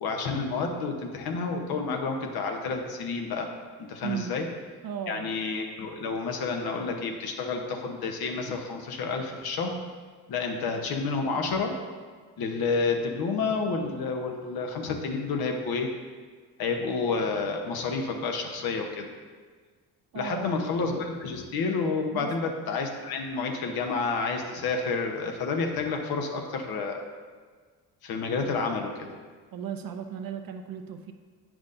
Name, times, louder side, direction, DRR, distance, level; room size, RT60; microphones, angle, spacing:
voice 1, 0.0-3.5 3.8-4.5 5.1-9.8 10.3-11.7 12.4-15.9 16.6-19.1 20.1-27.0 28.0-28.9, left 4 dB, 65° left, 3 dB, 1.0 m, -29 dB
voice 2, 4.0-4.3 4.8-5.3 20.1-20.6 22.1-22.3 29.5-31.1, right 8 dB, 60° right, 6 dB, 0.7 m, -35 dB
8.4 x 6.1 x 2.6 m, 1.5 s
supercardioid pair, 75°, 39 cm